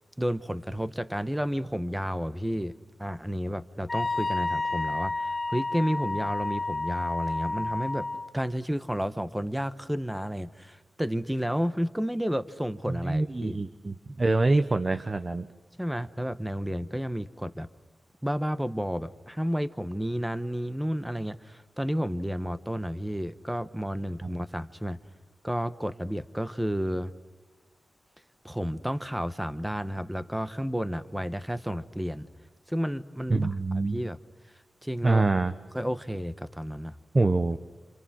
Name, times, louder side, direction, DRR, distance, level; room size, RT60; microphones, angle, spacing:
voice 1, 0.2-8.1 8.3-13.6 15.8-17.7 18.2-25.0 25.4-27.1 28.4-32.3 32.7-33.6 33.9-34.2 34.8-35.2 35.7-37.0, equal, 5° right, 12 dB, 1.1 m, -31 dB
Wind instrument woodwind instrument, 3.9-8.3, left 2 dB, 25° left, 1.7 m, -30 dB
voice 2, 12.9-15.5 33.3-34.0 35.0-35.5 37.1-37.6, right 3 dB, 30° right, 10 dB, 0.9 m, -25 dB
29.0 x 28.0 x 6.3 m, 1.2 s
wide cardioid pair, 120°, 0 cm